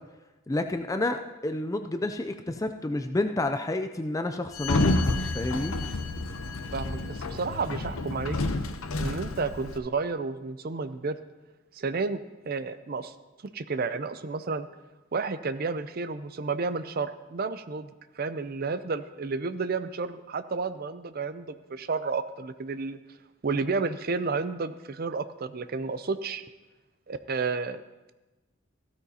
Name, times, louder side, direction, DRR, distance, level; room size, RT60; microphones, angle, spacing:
voice 1, 0.5-5.0 5.3-5.8, left 2 dB, 15° left, 7 dB, 0.3 m, -29 dB
Sliding door, 4.5-9.8, left 2 dB, 85° left, 0.8 m, -29 dB
voice 2, 6.7-8.4 9.0-11.2 11.7-13.1 13.5-14.7 15.1-23.0 23.4-26.4 27.1-27.8, right 4 dB, 45° right, 12 dB, 0.5 m, -31 dB
15.0 x 13.0 x 2.8 m, 1.1 s
head